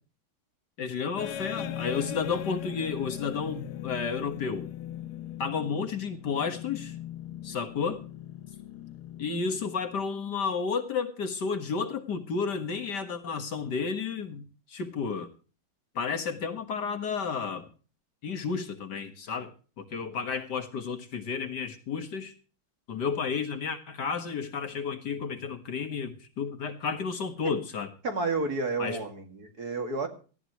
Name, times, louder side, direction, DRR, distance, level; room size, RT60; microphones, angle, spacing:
voice 1, 0.8-4.7 5.4-7.0 7.4-8.0 9.2-14.4 14.7-15.3 16.0-17.7 18.2-19.5 19.8-22.3 22.9-27.9 28.8-29.0, left 5 dB, 55° left, 8 dB, 1.9 m, -32 dB
sound 1, 1.2-10.1, left 11 dB, 85° left, 1.7 m, -39 dB
voice 2, 28.0-30.1, right 3 dB, 45° right, 5 dB, 2.5 m, -30 dB
18.0 x 14.5 x 3.0 m, 0.37 s
omnidirectional pair, 2.3 m